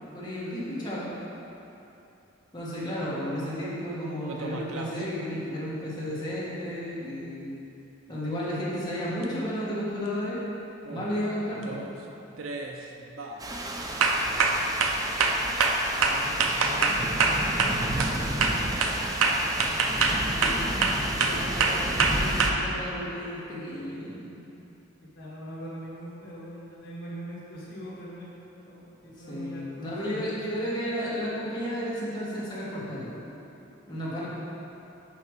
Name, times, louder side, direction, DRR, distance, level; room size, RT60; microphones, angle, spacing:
voice 1, 0.1-1.1 2.5-7.5 8.1-10.4 10.9-11.8 20.4-20.6 21.1-24.4 29.2-33.1 33.9-34.3, equal, 20° left, -8 dB, 1.6 m, -33 dB
sound 1, 4.3-5.0 9.2-9.3 10.8-11.1 11.6-11.9 12.4-12.7 13.2-13.4 14.0-18.2 18.4-22.5, right 4 dB, 90° right, 0.6 m, -25 dB
sound 2, 13.4-22.5, right 1 dB, 20° right, 0.5 m, -32 dB
voice 2, 15.9-17.3 17.8-20.4 20.7-21.0 25.1-30.2, equal, 70° left, -8 dB, 1.2 m, -43 dB
5.9 x 5.6 x 4.7 m, 2.9 s
head